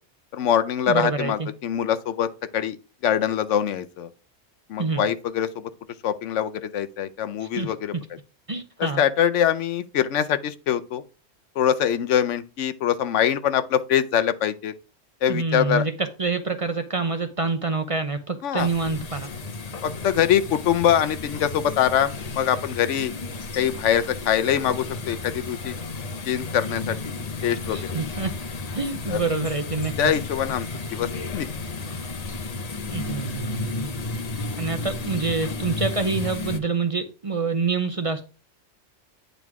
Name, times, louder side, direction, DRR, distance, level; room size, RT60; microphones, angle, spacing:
voice 1, 0.3-2.3 2.5-2.8 3.0-4.1 4.7-5.7 6.0-7.9 8.8-11.0 11.6-14.7 15.2-15.8 18.4-18.7 19.8-23.1 23.5-25.8 26.2-27.1 27.4-27.8 29.1-29.2 30.0-31.5, left 9 dB, 85° left, 1.0 m, -23 dB
voice 2, 0.9-1.5 4.8-5.1 7.4-7.7 8.5-9.0 15.3-19.3 27.7-28.3 28.7-30.0 32.9-33.9 34.5-38.3, right 4 dB, 35° right, 0.7 m, -27 dB
sound 1, 18.6-36.6, left 3 dB, 40° left, 0.7 m, -33 dB
9.3 x 4.0 x 4.7 m
omnidirectional pair, 1.2 m